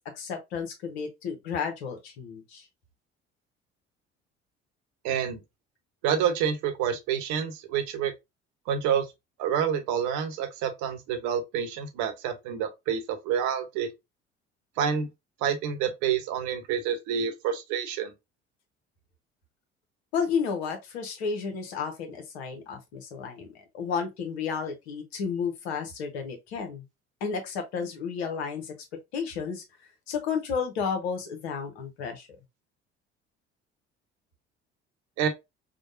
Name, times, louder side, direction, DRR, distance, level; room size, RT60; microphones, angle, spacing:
voice 1, 0.1-2.7 20.1-26.8 27.2-28.7 29.1-29.6 30.1-32.3, left 6 dB, 70° left, 1.0 m, -32 dB
voice 2, 5.0-5.4 6.0-8.1 8.7-9.1 9.4-13.9 14.8-15.1 15.4-18.1 35.2-35.3, right 8 dB, 60° right, 0.9 m, -28 dB
4.9 x 2.2 x 2.6 m
figure-of-eight pair, 55°, 33 cm